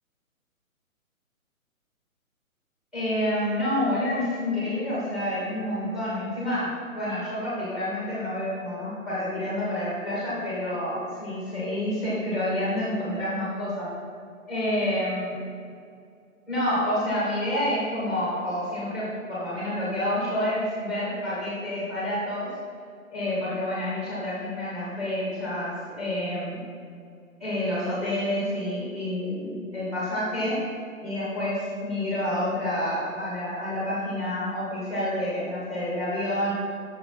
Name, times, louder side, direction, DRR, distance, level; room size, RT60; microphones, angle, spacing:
voice 1, 2.9-13.9 14.5-15.4 16.5-22.5 23.1-26.6 27.4-30.7 31.0-36.5, left 1 dB, ahead, -7 dB, 2.1 m, -28 dB
7.9 x 7.0 x 4.1 m, 2.4 s
hypercardioid pair, 155°, 42 cm